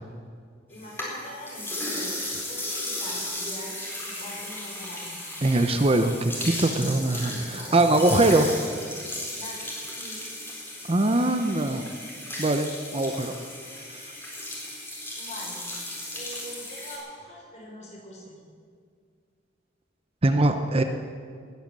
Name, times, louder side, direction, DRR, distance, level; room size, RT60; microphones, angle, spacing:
voice 1, 0.7-5.2 7.0-8.5 9.3-10.2 15.2-15.6 16.1-18.4, equal, 40° left, -3 dB, 5.5 m, -42 dB
sound 1, 0.7-17.0, left 1 dB, 15° left, 4.0 m, -35 dB
voice 2, 5.4-8.4 10.9-11.8 12.4-13.3 20.2-20.8, right 2 dB, 35° right, 7 dB, 0.8 m, -22 dB
19.0 x 9.3 x 7.5 m, 2.1 s
head